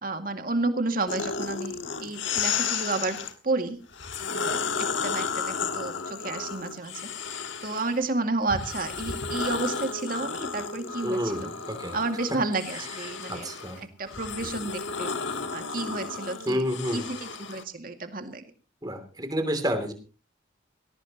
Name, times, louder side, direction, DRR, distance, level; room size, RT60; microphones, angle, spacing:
voice 1, 0.0-3.2 3.4-3.8 4.3-11.5 11.9-13.5 13.8-15.1 15.5-16.7 16.9-18.4, right 3 dB, 45° right, 6 dB, 2.2 m, -31 dB
sound 1, 1.1-3.3 3.9-8.0 8.5-17.6, left 5 dB, 70° left, 1.6 m, -33 dB
voice 2, 11.0-12.0 12.7-12.8 13.3-13.8 16.5-17.0 18.8-19.9, equal, 20° right, 7 dB, 2.9 m, -29 dB
20.5 x 17.5 x 3.0 m, 0.35 s
head